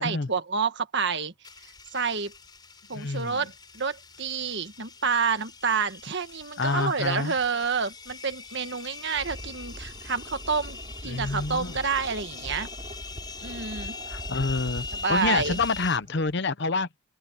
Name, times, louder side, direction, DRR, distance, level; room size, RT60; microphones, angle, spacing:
voice 1, 0.0-1.3 1.9-2.3 2.9-10.8 11.0-12.7 13.4-14.0 15.0-15.6, right 5 dB, 55° right, 1.7 m, -28 dB
sound 1, 1.4-16.0, left 4 dB, 20° left, 3.8 m, -42 dB
voice 2, 2.9-3.5 6.6-7.3 11.0-11.8 14.1-16.9, left 3 dB, 55° left, 0.8 m, -28 dB
sound 2, 8.6-16.5, equal, 30° right, 5.1 m, -42 dB
open air
head